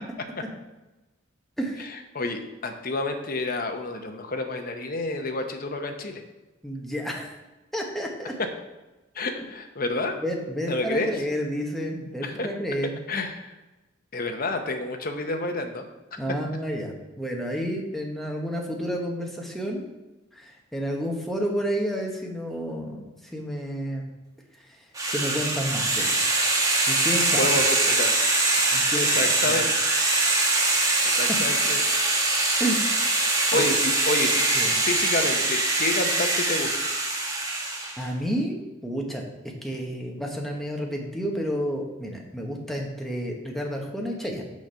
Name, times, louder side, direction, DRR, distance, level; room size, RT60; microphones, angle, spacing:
voice 1, 1.6-2.0 6.6-7.3 7.7-8.3 10.2-13.0 16.2-19.9 20.3-24.1 24.6-26.2 26.9-27.5 28.7-29.6 31.1-31.2 32.6-33.2 33.5-33.8 34.5-34.8 38.0-44.5, equal, ahead, 0 dB, 1.1 m, -31 dB
voice 2, 2.1-6.2 9.1-10.2 10.7-11.1 12.2-12.5 13.1-13.5 14.1-15.8 16.1-16.2 27.4-28.2 29.0-29.7 31.0-31.9 33.5-36.7, left 2 dB, 45° left, 5 dB, 0.9 m, -29 dB
sound 1, 25.0-38.0, right 2 dB, 15° right, 1.2 m, -23 dB
6.4 x 5.2 x 5.6 m, 1.1 s
head